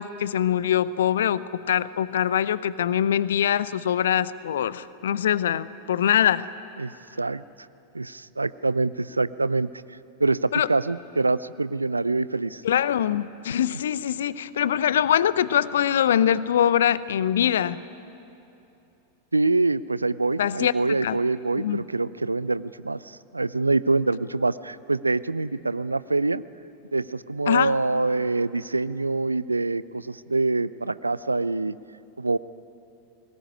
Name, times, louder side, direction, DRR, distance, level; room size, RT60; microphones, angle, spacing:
voice 1, 0.0-6.5 10.5-10.7 12.6-17.8 20.4-20.7 21.0-21.2 21.6-21.8 27.5-27.7, left 10 dB, 60° left, 18 dB, 0.6 m, -23 dB
voice 2, 6.8-7.4 7.9-12.6 13.7-13.8 19.3-26.4 26.9-31.8 32.2-32.4, right 3 dB, 80° right, 18 dB, 0.4 m, -25 dB
20.5 x 19.0 x 9.8 m, 2.9 s
figure-of-eight pair, 90°, 0 cm